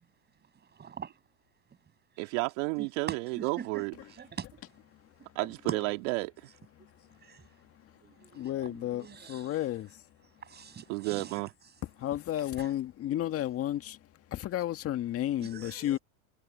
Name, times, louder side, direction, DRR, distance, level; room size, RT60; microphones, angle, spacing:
voice 1, 0.8-1.1 2.8-2.9 3.4-3.8 4.2-4.5 7.2-7.4 8.0-9.6 10.4-11.4 12.6-12.7 15.4-16.0, right 7 dB, 20° right, 7.3 m, -45 dB
voice 2, 2.2-3.9 5.4-6.3 10.9-11.5, right 27 dB, 55° right, 2.2 m, -31 dB
voice 3, 8.3-9.9 11.8-14.0 14.3-16.0, left 13 dB, 30° left, 1.9 m, -32 dB
hypercardioid pair, 120°, 44 cm